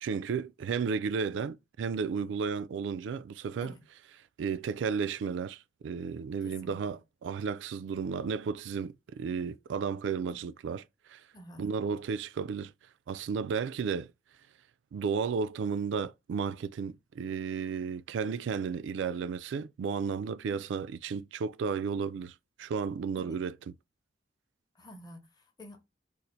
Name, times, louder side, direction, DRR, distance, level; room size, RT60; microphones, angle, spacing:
voice 1, 0.0-3.7 4.4-10.8 11.1-11.2 11.6-12.7 13.1-14.1 14.9-23.6, right 6 dB, 70° right, 0.3 m, -33 dB
voice 2, 6.4-6.8 10.3-10.4 11.3-11.7 20.5-20.8 23.2-23.4 24.8-25.8, left 1 dB, 20° left, 0.7 m, -50 dB
2.6 x 2.5 x 4.2 m
head